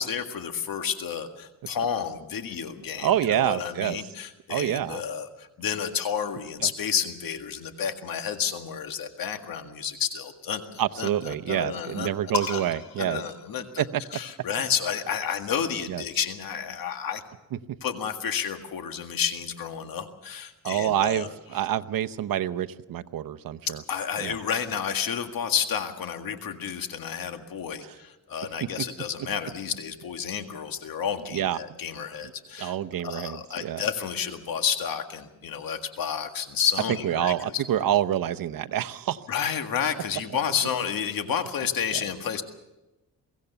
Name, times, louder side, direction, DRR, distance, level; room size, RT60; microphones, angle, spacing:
voice 1, 0.0-12.1 12.5-12.6 13.0-13.8 14.1-17.2 17.8-21.3 23.9-32.7 33.0-37.6 39.3-42.4, left 7 dB, 90° left, 6 dB, 1.9 m, -30 dB
voice 2, 3.0-4.0 4.5-5.0 6.6-6.7 10.8-13.2 13.8-14.0 15.9-16.0 20.6-23.8 24.2-24.3 31.3-31.6 32.6-33.8 37.0-39.2, right 11 dB, 80° right, 11 dB, 0.8 m, -27 dB
sound 1, 12.3-14.1 15.3-16.9, left 7 dB, 75° left, 3.5 m, -38 dB
23.0 x 16.5 x 6.9 m, 0.99 s
cardioid pair, 90°, 34 cm